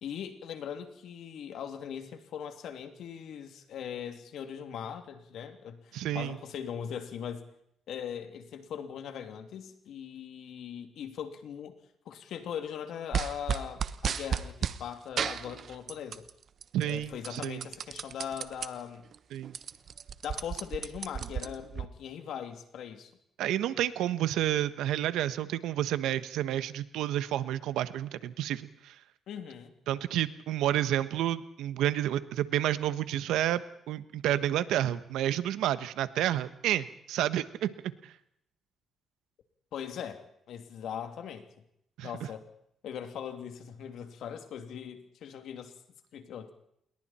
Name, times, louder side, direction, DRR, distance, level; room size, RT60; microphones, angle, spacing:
voice 1, 0.0-7.5 7.9-11.7 12.1-16.2 16.8-19.1 20.2-23.1 29.3-29.7 39.7-41.4 42.0-42.5 42.8-45.7 46.1-46.5, left 8 dB, 75° left, 6 dB, 2.8 m, -40 dB
voice 2, 5.9-6.4 16.7-17.6 19.3-19.5 23.4-28.9 29.9-37.7 38.0-38.1 42.0-42.1, right 12 dB, 85° right, 13 dB, 1.2 m, -30 dB
sound 1, 13.1-14.8 15.2-16.3 16.6-18.7 19.1-19.2 19.4-21.9, right 7 dB, 55° right, 1.1 m, -33 dB
28.0 x 22.0 x 4.4 m, 0.73 s
cardioid pair, 90°, 0 cm